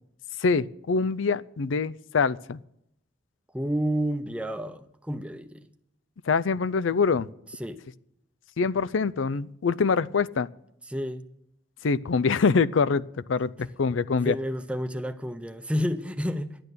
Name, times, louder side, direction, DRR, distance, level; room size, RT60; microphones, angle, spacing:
voice 1, 0.4-2.6 6.3-7.3 8.6-10.5 11.8-13.0 13.3-14.3, left 5 dB, 90° left, 0.5 m, -24 dB
voice 2, 3.5-5.7 7.6-7.8 10.9-11.3 14.3-16.6, equal, 5° right, 0.7 m, -30 dB
11.5 x 9.0 x 8.1 m
head